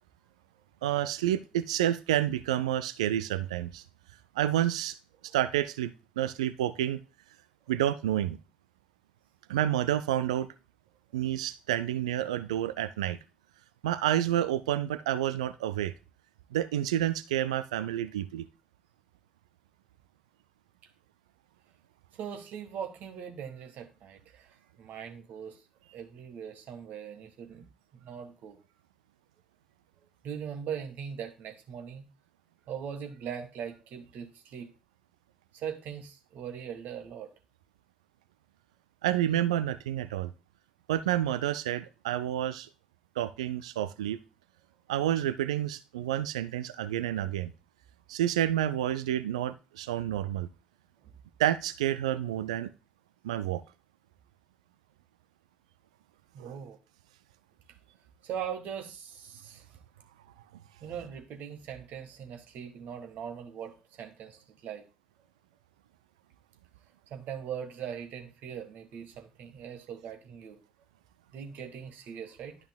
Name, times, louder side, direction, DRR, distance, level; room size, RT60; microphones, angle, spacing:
voice 1, 0.8-3.8 4.4-5.0 5.3-7.0 7.7-8.4 9.5-10.5 11.1-13.2 13.8-15.9 16.5-18.4 39.0-40.3 40.9-42.7 43.2-44.2 44.9-47.5 48.1-50.5 51.4-52.7 53.2-53.6 56.4-56.6, right 12 dB, 75° right, 14 dB, 0.3 m, -29 dB
voice 2, 22.2-25.6 25.9-27.7 27.9-28.6 30.2-32.0 32.7-34.7 35.5-37.3 51.0-51.1 56.3-56.8 58.2-59.6 60.8-64.8 67.1-70.6 71.3-72.6, right 8 dB, 60° right, 6 dB, 1.3 m, -40 dB
12.0 x 5.6 x 2.2 m, 0.30 s
figure-of-eight pair, 40°, 3 cm